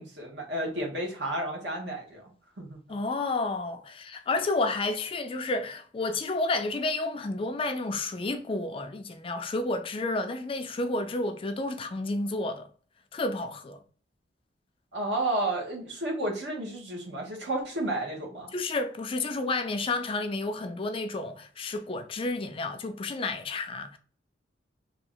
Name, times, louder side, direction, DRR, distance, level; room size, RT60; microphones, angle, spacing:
voice 1, 0.0-2.3 2.6-2.8 14.9-18.5, right 1 dB, 70° right, 1.3 m, -32 dB
voice 2, 2.9-12.7 13.1-13.8 18.5-24.0, left 2 dB, 30° left, 0.4 m, -31 dB
3.0 x 2.4 x 3.7 m
head